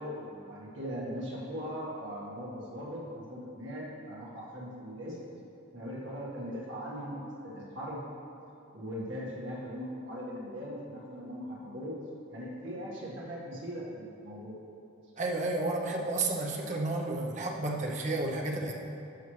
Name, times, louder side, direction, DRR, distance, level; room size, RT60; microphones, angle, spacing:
voice 1, 0.0-5.2 5.7-8.0 8.7-12.0 12.3-14.6, equal, 60° right, -5 dB, 1.7 m, -39 dB
voice 2, 15.2-18.7, right 2 dB, 35° right, 0 dB, 0.8 m, -31 dB
12.5 x 6.2 x 3.2 m, 2.9 s
head